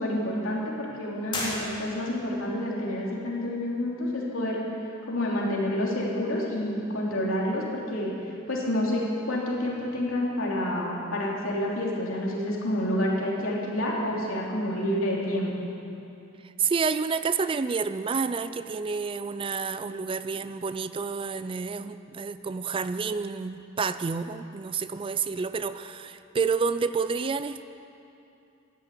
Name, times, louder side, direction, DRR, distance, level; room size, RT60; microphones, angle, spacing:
voice 1, 0.0-4.6 5.0-8.1 8.5-15.7, left 1 dB, 80° left, -4 dB, 3.2 m, -28 dB
sound 1, 1.3-2.3, left 2 dB, 25° left, 2.6 m, -33 dB
voice 2, 16.6-27.6, right 5 dB, 25° right, 12 dB, 0.4 m, -29 dB
13.5 x 10.5 x 8.4 m, 2.7 s
head